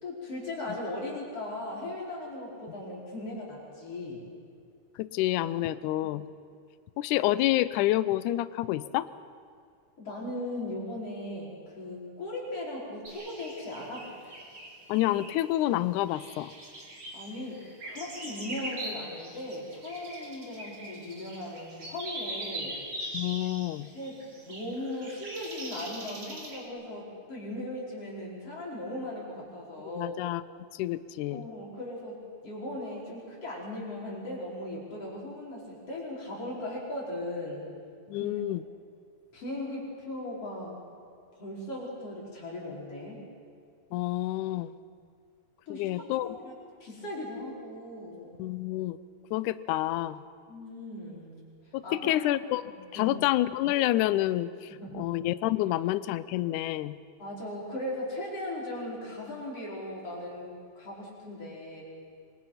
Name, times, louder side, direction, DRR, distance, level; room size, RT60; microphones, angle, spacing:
voice 1, 0.0-4.2 10.0-14.1 17.1-22.8 23.9-30.1 31.3-37.7 38.2-38.6 39.3-40.8 41.3-43.2 45.7-46.5 46.8-48.4 50.5-51.4 51.8-52.1 52.9-53.2 54.7-55.2 57.2-61.8, left 1 dB, 40° left, -4 dB, 6.1 m, -38 dB
voice 2, 5.0-6.3 7.0-9.1 14.9-16.5 23.1-23.9 30.0-30.4 30.7-31.5 38.1-38.6 43.9-44.7 45.7-46.3 48.4-49.0 49.3-50.2 51.7-52.6 52.9-54.7 54.9-57.0, left 15 dB, 75° left, 15 dB, 1.9 m, -28 dB
sound 1, 13.0-15.4 16.1-26.6, right 1 dB, 30° right, 4.2 m, -41 dB
26.0 x 25.0 x 5.9 m, 2.3 s
omnidirectional pair, 4.0 m